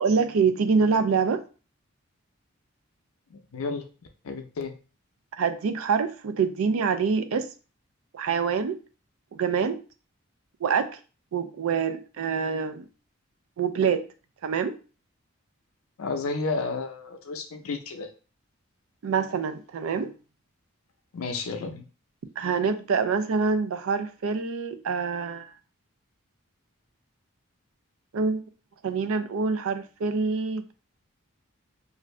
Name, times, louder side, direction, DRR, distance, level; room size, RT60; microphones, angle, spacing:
voice 1, 0.0-1.4 5.4-7.5 8.1-8.8 9.3-9.8 10.6-10.9 11.3-12.9 13.6-14.0 14.4-14.8 19.0-20.1 22.4-25.5 28.1-28.4 28.8-30.7, right 5 dB, 80° right, 0.4 m, -25 dB
voice 2, 3.3-3.9 4.2-4.8 16.0-18.1 21.1-21.8, left 3 dB, 85° left, 0.5 m, -32 dB
2.6 x 2.5 x 3.1 m
head